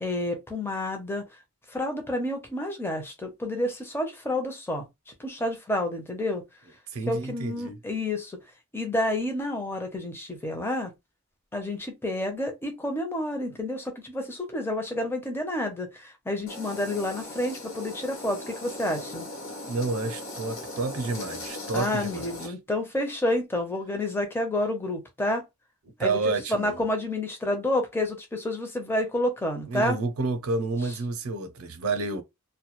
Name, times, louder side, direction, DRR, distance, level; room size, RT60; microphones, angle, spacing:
voice 1, 0.0-1.2 1.7-4.8 5.2-6.5 7.1-8.3 8.7-10.9 11.5-19.3 21.7-25.4 26.0-26.2 26.5-30.0, left 1 dB, 10° left, 0.5 m, -29 dB
voice 2, 6.9-7.8 19.6-22.5 26.0-26.8 29.7-32.2, right 3 dB, 75° right, 0.5 m, -30 dB
sound 1, 16.5-22.5, left 2 dB, 65° left, 1.0 m, -39 dB
2.2 x 2.1 x 2.9 m
head